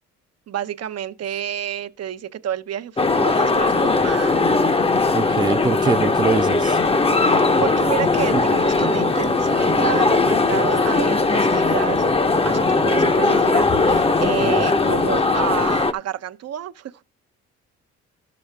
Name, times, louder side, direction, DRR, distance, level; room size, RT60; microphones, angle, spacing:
voice 1, 0.5-4.4 7.2-17.0, right 10 dB, 55° right, 0.7 m, -29 dB
sound 1, 3.0-15.9, left 3 dB, 20° left, 0.7 m, -19 dB
voice 2, 5.1-6.8 8.3-8.4 14.6-14.7, right 5 dB, 15° right, 0.4 m, -23 dB
12.5 x 6.9 x 3.4 m
cardioid pair, 90°, 30 cm